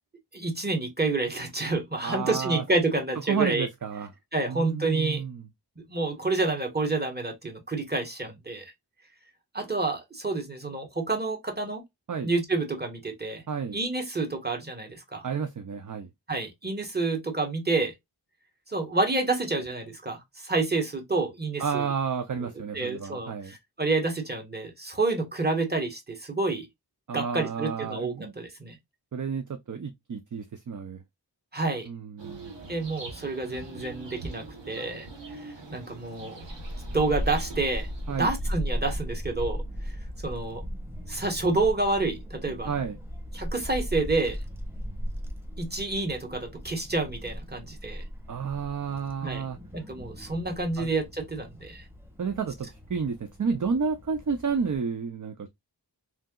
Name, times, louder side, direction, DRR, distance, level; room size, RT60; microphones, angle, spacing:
voice 1, 0.3-3.7 4.3-5.2 5.8-8.7 9.5-11.8 12.2-13.4 13.7-15.3 16.3-17.9 18.7-21.9 22.4-26.7 27.1-28.8 31.5-31.9 32.7-36.4 36.9-40.0 40.2-40.6 41.1-42.7 43.3-44.4 45.6-48.0 49.2-49.4 49.7-51.9, right 3 dB, 25° right, 1.3 m, -29 dB
voice 2, 2.0-2.6 3.3-4.1 4.5-5.4 12.1-12.3 13.5-13.8 15.2-16.1 21.6-23.5 27.1-28.3 29.1-31.0 31.9-32.5 38.1-38.3 42.7-43.0 48.3-49.6 50.8-50.9 52.2-55.5, right 6 dB, 45° right, 0.5 m, -31 dB
sound 1, 32.2-38.5, right 3 dB, 90° right, 1.0 m, -43 dB
Child speech kid speaking / Wind, 36.4-54.8, equal, 5° right, 1.0 m, -37 dB
3.3 x 2.8 x 2.2 m
wide cardioid pair, 45°, 42 cm